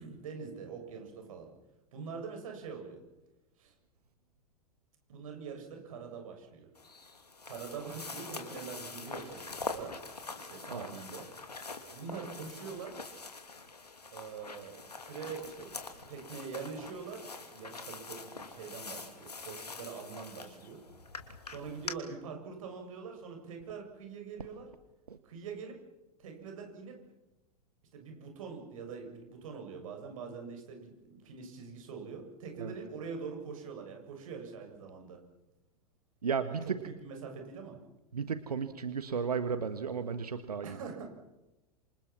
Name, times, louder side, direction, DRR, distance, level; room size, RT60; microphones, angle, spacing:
voice 1, 0.0-1.5 1.9-3.0 3.6-3.7 5.1-6.7 7.4-9.9 10.3-11.3 11.9-12.9 14.1-20.8 21.5-24.7 25.2-25.8 26.2-26.9 27.9-35.2 36.5-37.8 40.6-41.1, right 5 dB, 55° right, 3 dB, 7.1 m, -44 dB
sound 1, 6.7-21.9, left 3 dB, 80° left, 2.9 m, -44 dB
voice 2, 36.2-36.8 38.1-40.8, right 6 dB, 70° right, 10 dB, 1.6 m, -34 dB
27.5 x 27.5 x 6.1 m, 0.99 s
figure-of-eight pair, 95°, 20 cm